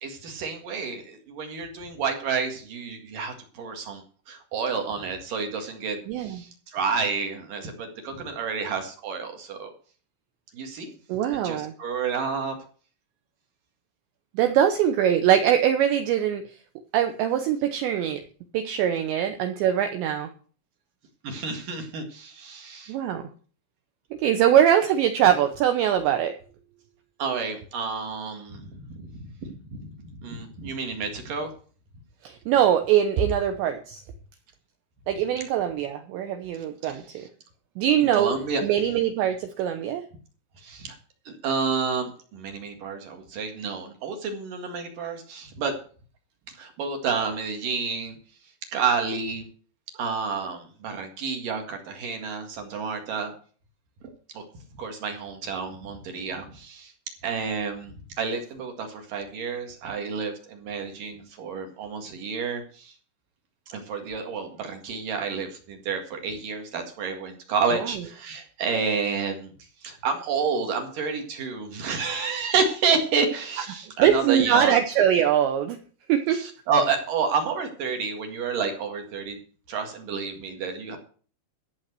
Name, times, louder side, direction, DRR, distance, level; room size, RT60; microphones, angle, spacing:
voice 1, 0.0-4.0 4.3-9.7 10.5-10.9 11.4-12.5 21.2-22.9 27.2-29.0 29.4-31.5 36.8-37.0 38.0-38.6 40.6-40.9 41.3-45.7 46.6-48.2 48.7-49.5 49.9-53.3 54.3-54.4 54.8-56.9 57.2-62.9 63.7-69.5 69.8-74.7 76.3-79.4 79.7-81.0, right 5 dB, 55° right, 4 dB, 2.7 m, -30 dB
voice 2, 6.1-6.4 11.1-11.7 14.3-16.4 16.9-18.2 18.5-20.3 22.9-23.3 24.2-26.4 32.2-34.0 35.1-37.3 37.8-38.3 38.6-40.0 67.7-68.0 74.0-75.8 76.1-76.4, right 10 dB, 75° right, 7 dB, 2.8 m, -22 dB
14.5 x 7.2 x 6.7 m, 0.41 s
omnidirectional pair, 6.0 m